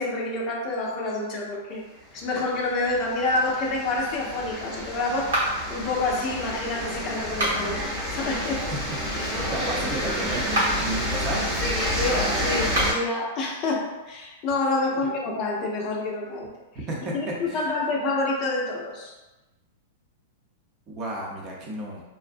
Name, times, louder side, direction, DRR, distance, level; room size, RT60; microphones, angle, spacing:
voice 1, 0.0-1.8 2.1-5.3 5.7-7.8 8.1-8.7 9.5-9.7 11.9-16.5 17.1-19.1, left 2 dB, 40° left, -1 dB, 0.5 m, -28 dB
sound 1, 2.2-12.9, equal, 5° left, 0.8 m, -29 dB
sound 2, 5.3-5.8 7.2-7.8 10.4-10.9 12.6-13.1, right 1 dB, 70° right, 0.9 m, -26 dB
voice 2, 9.5-11.5 15.0-15.1 16.9-17.1 17.5-17.7 20.9-22.0, right 2 dB, 35° right, -3 dB, 0.7 m, -32 dB
2.5 x 2.0 x 2.5 m, 1.1 s
hypercardioid pair, 100°, 0 cm